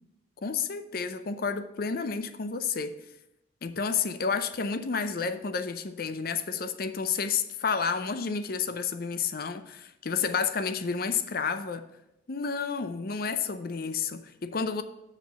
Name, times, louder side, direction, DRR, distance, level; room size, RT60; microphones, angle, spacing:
voice 1, 0.4-3.0 3.6-11.8 12.3-14.8, left 5 dB, 50° left, 10 dB, 0.5 m, -30 dB
7.6 x 4.9 x 6.8 m, 0.91 s
head